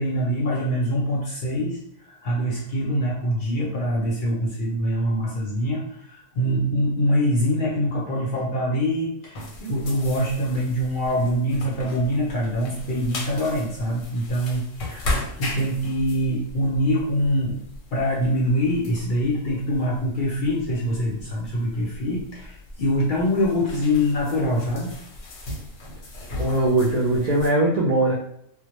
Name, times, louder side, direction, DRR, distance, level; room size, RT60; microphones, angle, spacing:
voice 1, 0.0-17.6 17.9-24.9, equal, 55° left, -4 dB, 0.6 m, -24 dB
sound 1, 9.4-27.5, left 2 dB, 85° left, 1.0 m, -37 dB
voice 2, 26.4-28.1, right 2 dB, 65° right, -5 dB, 0.4 m, -20 dB
2.2 x 2.0 x 2.9 m, 0.70 s
omnidirectional pair, 1.3 m